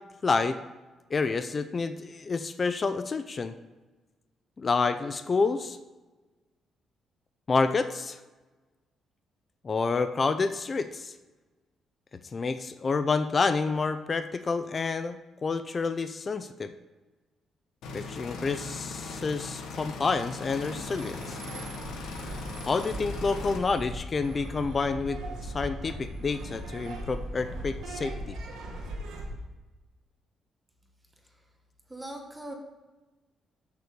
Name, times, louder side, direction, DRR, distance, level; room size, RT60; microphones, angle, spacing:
voice 1, 0.2-0.6 1.1-3.5 4.6-5.8 7.5-8.2 9.6-11.1 12.3-16.7 17.9-21.4 22.6-28.4, left 4 dB, 30° left, 10 dB, 0.5 m, -29 dB
sound 1, 17.8-23.6, left 3 dB, 85° left, 1.2 m, -39 dB
sound 2, 20.6-29.4, right 1 dB, 90° right, 1.8 m, -39 dB
voice 2, 31.9-32.5, right 1 dB, 10° right, 2 dB, 1.4 m, -40 dB
6.8 x 6.1 x 6.5 m, 1.2 s
cardioid pair, 120°, 0 cm